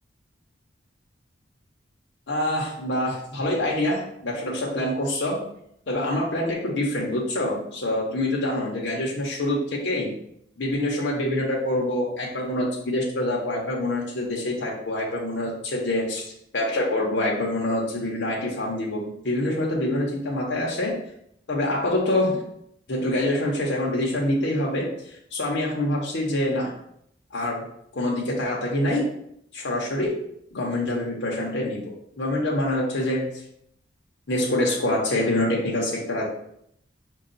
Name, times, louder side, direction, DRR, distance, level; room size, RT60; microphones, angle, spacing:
voice 1, 2.3-5.4 5.9-10.1 10.6-21.0 21.5-22.4 22.9-24.9 25.3-26.7 27.3-27.6 27.9-29.1 29.5-30.2 30.5-33.3 34.3-36.3, left 1 dB, 65° left, -3 dB, 0.8 m, -25 dB
5.4 x 2.3 x 3.9 m, 0.72 s
head